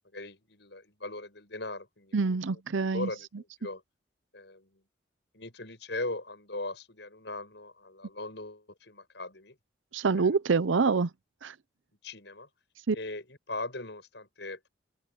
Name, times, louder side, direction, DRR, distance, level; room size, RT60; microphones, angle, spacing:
voice 1, 0.1-2.4 2.9-3.3 3.6-3.8 4.3-4.8 5.3-9.6 10.1-10.3 12.0-12.5 12.9-14.7, left 2 dB, 65° left, 7.2 m, -39 dB
voice 2, 2.1-3.1 9.9-11.1 11.4-11.5 12.9-13.0, right 4 dB, 80° right, 0.6 m, -26 dB
open air
head